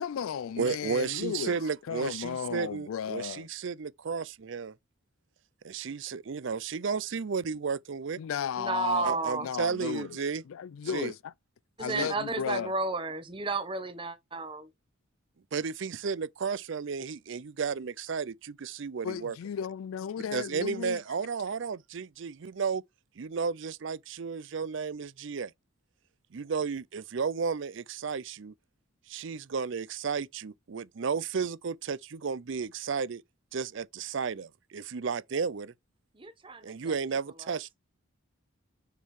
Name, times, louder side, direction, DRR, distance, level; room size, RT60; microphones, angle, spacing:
voice 1, 0.0-1.6 1.9-3.5 8.2-10.2 10.4-11.3 11.8-12.7 19.0-21.0, left 7 dB, 75° left, 0.3 m, -35 dB
voice 2, 0.6-4.7 5.6-8.2 9.0-10.4 10.8-11.1 11.9-12.1 15.5-19.4 20.3-22.8 23.2-25.5 26.3-28.5 29.1-33.2 33.5-35.7 36.6-37.7, right 5 dB, 60° right, 0.5 m, -33 dB
voice 3, 8.6-9.5 11.8-14.7 36.1-36.9 37.4-37.7, right 3 dB, 25° right, 0.9 m, -33 dB
6.8 x 4.4 x 4.7 m
head